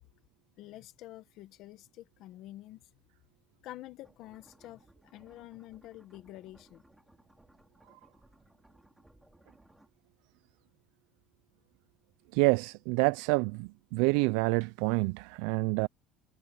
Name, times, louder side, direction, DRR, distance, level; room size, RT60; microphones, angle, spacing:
voice 1, 0.6-2.9 3.6-6.8, left 15 dB, 55° left, 1.2 m, -48 dB
sound 1, 4.0-9.9, right 1 dB, 5° right, 3.1 m, -62 dB
voice 2, 12.3-15.9, right 28 dB, 80° right, 0.3 m, -27 dB
cardioid pair, 145°, 0 cm